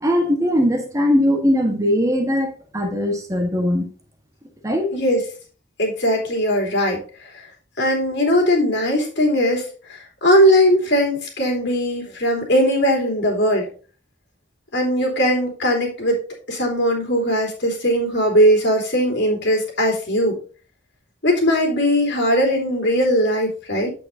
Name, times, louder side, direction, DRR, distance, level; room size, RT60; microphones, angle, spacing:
voice 1, 0.0-3.9 4.6-5.0, equal, 15° right, 1.4 m, -20 dB
voice 2, 5.8-7.0 7.8-9.6 10.2-13.7 14.7-16.2 16.5-20.4 21.2-23.9, equal, 65° left, 3.4 m, -19 dB
8.9 x 7.7 x 2.7 m
head